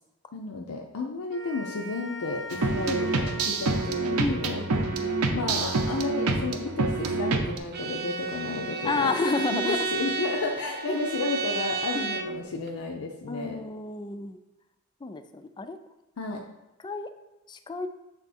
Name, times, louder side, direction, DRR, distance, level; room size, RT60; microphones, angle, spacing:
voice 1, 0.3-4.6 5.3-9.1 9.5-13.6 16.2-16.4, left 3 dB, 70° left, 2 dB, 0.5 m, -32 dB
sound 1, 1.3-7.7, left 2 dB, ahead, 0.9 m, -43 dB
sound 2, 2.5-7.6, right 3 dB, 80° right, 0.7 m, -27 dB
voice 2, 4.2-5.4 8.8-9.8 10.9-11.0 11.9-12.1 13.3-14.4 15.0-15.8 16.8-17.1 17.5-17.9, left 3 dB, 20° left, 10 dB, 0.3 m, -31 dB
Bowed string instrument, 7.7-12.4, right 4 dB, 45° right, 0.5 m, -32 dB
7.5 x 3.5 x 4.2 m, 0.95 s
head